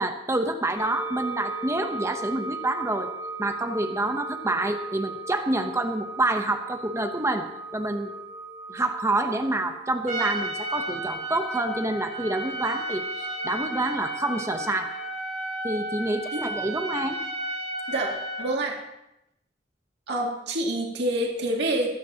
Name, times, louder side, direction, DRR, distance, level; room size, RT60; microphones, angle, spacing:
voice 1, 0.0-3.1 3.4-7.5 7.7-8.1 8.7-14.9 15.6-17.2, right 2 dB, 15° right, 6 dB, 0.8 m, -27 dB
sound 1, 0.8-15.0, right 3 dB, 70° left, 1.6 m, -38 dB
Trumpet, 10.1-18.5, right 1 dB, 40° right, 2.1 m, -33 dB
voice 2, 18.4-18.8 20.1-21.9, right 1 dB, 65° right, -1 dB, 2.3 m, -27 dB
22.0 x 9.1 x 2.9 m, 0.86 s
head